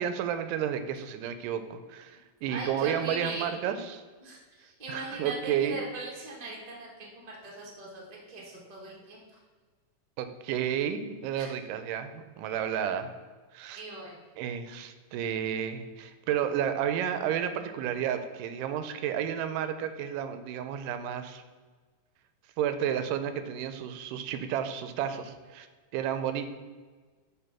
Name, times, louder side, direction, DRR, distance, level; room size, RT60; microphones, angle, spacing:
voice 1, 0.0-4.0 4.9-5.8 10.2-13.1 13.5-13.8 14.4-21.4 22.6-25.7 25.9-26.4, right 9 dB, 85° right, 9 dB, 2.2 m, -31 dB
voice 2, 2.5-3.8 4.2-5.3 5.6-9.4 11.4-11.5 13.7-14.2, right 2 dB, 60° right, -3 dB, 0.4 m, -40 dB
7.6 x 3.3 x 5.9 m, 1.4 s
omnidirectional pair, 3.7 m